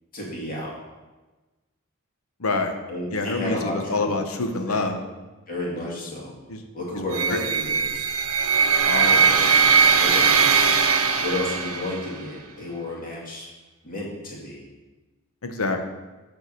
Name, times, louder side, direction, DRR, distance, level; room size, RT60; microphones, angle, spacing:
voice 1, 0.1-0.7 2.9-4.1 4.7-4.8 5.5-6.3 6.7-8.1 9.1-9.5 10.0-10.6 11.2-13.4 13.8-14.6, left 1 dB, 40° left, -4 dB, 2.3 m, -32 dB
voice 2, 2.4-2.7 3.1-5.0 5.8-5.9 6.5-6.6 7.0-7.4 8.8-9.3 15.4-15.8, left 3 dB, 70° left, 6 dB, 0.9 m, -26 dB
sound 1, 7.1-12.2, right 5 dB, 70° right, 0.7 m, -20 dB
6.6 x 4.7 x 6.7 m, 1.2 s
head